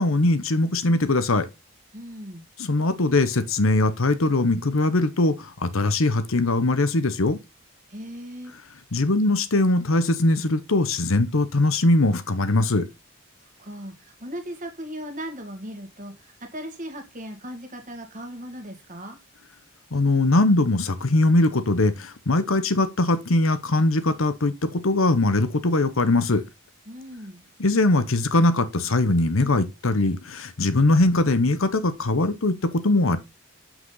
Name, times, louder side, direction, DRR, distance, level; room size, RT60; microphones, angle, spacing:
voice 1, 0.0-1.5 2.6-7.4 8.9-12.9 19.9-26.4 27.6-33.2, left 2 dB, 70° left, 1.0 m, -21 dB
voice 2, 1.9-2.4 7.9-8.5 13.4-19.2 26.9-27.4, equal, 35° right, 1.9 m, -38 dB
7.5 x 6.1 x 4.0 m
head